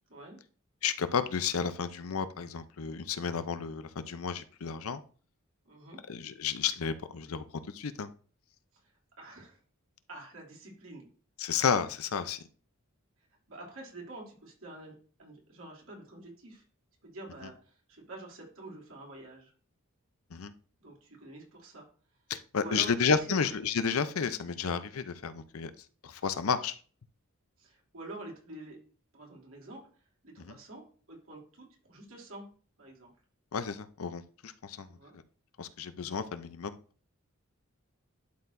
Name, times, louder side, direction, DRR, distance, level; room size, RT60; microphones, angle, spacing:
voice 1, 0.8-5.0 6.1-7.4 7.7-8.1 11.4-12.4 20.3-20.5 22.3-25.7 26.0-26.7 30.5-30.6 33.5-34.9 35.6-36.8, left 6 dB, 80° left, 12 dB, 0.6 m, -32 dB
voice 2, 5.6-6.0 9.2-9.6 10.1-11.0 13.5-16.6 17.0-19.5 20.8-21.9 22.6-22.9 23.2-23.4 27.6-28.8 29.1-29.8 30.2-30.8 31.1-32.5 32.8-33.1 34.9-35.1, right 2 dB, 70° right, -2 dB, 2.7 m, -47 dB
11.5 x 4.6 x 2.6 m, 0.41 s
head